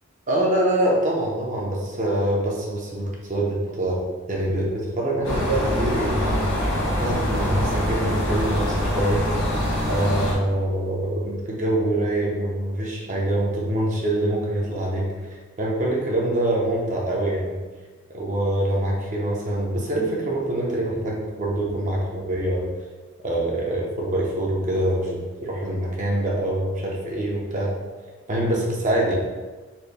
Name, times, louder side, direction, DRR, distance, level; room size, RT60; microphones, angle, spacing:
voice 1, 0.3-4.0 4.3-6.7 7.0-9.4 9.9-17.6 18.1-22.7 23.2-27.7 28.3-29.1, right 1 dB, 35° right, -3 dB, 0.6 m, -25 dB
sound 1, 5.2-10.3, equal, 65° left, 1.2 m, -24 dB
4.1 x 2.1 x 3.3 m, 1.3 s
head